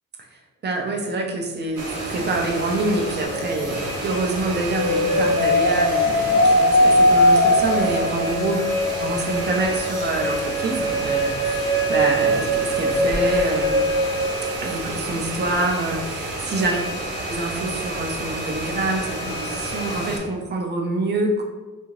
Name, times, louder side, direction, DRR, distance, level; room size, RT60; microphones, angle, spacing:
voice 1, 0.6-8.6 9.0-13.9 14.6-16.9 17.3-21.4, right 2 dB, 35° right, 1 dB, 0.4 m, -26 dB
sound 1, 1.8-20.2, right 1 dB, 70° right, 1.0 m, -30 dB
sound 2, 3.2-4.0 4.7-14.7, left 1 dB, 60° left, 0.8 m, -21 dB
2.6 x 2.4 x 3.0 m, 1.3 s
wide cardioid pair, 170°, 32 cm